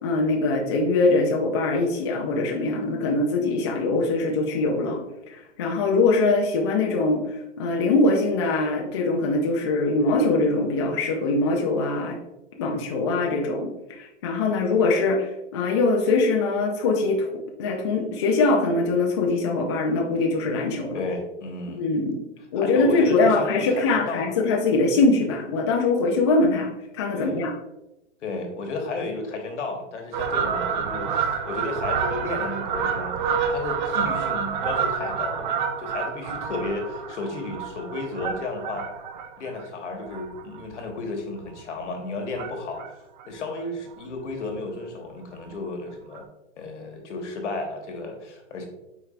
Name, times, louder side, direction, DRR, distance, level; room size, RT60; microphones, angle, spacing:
voice 1, 0.0-5.0 5.3-7.2 7.6-12.2 12.6-17.3 17.6-21.0 21.7-22.2 22.5-26.7 26.9-27.5, left 3 dB, 25° left, 1 dB, 0.3 m, -22 dB
voice 2, 20.9-21.9 22.5-24.4 27.1-27.4 28.2-38.9 39.4-42.8 43.3-46.3 46.6-48.6, left 3 dB, 80° left, 3 dB, 1.3 m, -33 dB
Fowl, 30.1-40.9 41.4-41.6 42.3-42.9 43.2-43.3 43.5-43.6 43.9-44.0 44.3-44.5 45.5-45.6 46.1-46.2, right 7 dB, 40° right, 0.5 m, -28 dB
4.7 x 4.5 x 2.4 m, 0.91 s
hypercardioid pair, 155°, 36 cm